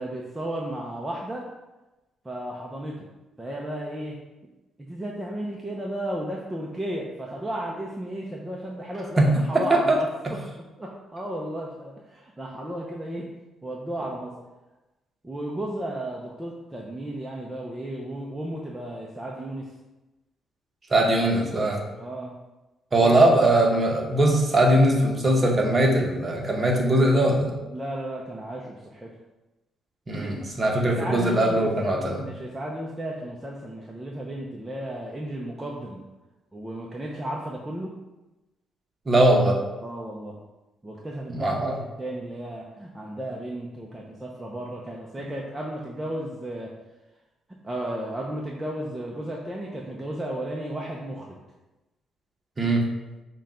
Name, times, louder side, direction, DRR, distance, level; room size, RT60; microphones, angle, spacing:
voice 1, 0.0-1.5 2.2-3.1 3.4-4.2 4.8-10.4 10.8-13.3 13.6-14.4 15.2-19.7 21.9-22.3 23.0-23.2 27.7-29.1 30.2-30.4 30.7-31.7 32.2-36.0 36.5-38.0 39.8-40.4 40.8-46.7 47.6-51.4, right 1 dB, 15° right, -2 dB, 0.5 m, -34 dB
voice 2, 20.9-21.8 22.9-27.5 30.1-32.3 39.1-39.6 41.3-41.8 52.6-52.8, right 1 dB, 30° right, 0 dB, 0.9 m, -20 dB
5.5 x 2.2 x 3.7 m, 1.1 s
cardioid pair, 90°, 0 cm